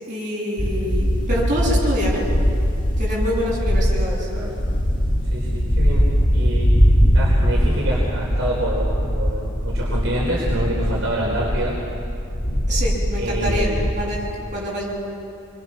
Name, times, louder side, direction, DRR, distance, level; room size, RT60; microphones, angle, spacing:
voice 1, 0.1-2.3 3.0-4.3 12.7-13.7 14.0-14.2 14.5-14.8, equal, 35° right, -5 dB, 8.0 m, -26 dB
sound 1, 0.6-14.2, equal, 35° left, 1.8 m, -21 dB
voice 2, 5.3-6.1 6.3-6.7 7.1-11.7 13.2-14.0, right 1 dB, 60° right, -4 dB, 4.4 m, -27 dB
28.5 x 23.5 x 6.2 m, 2.7 s
head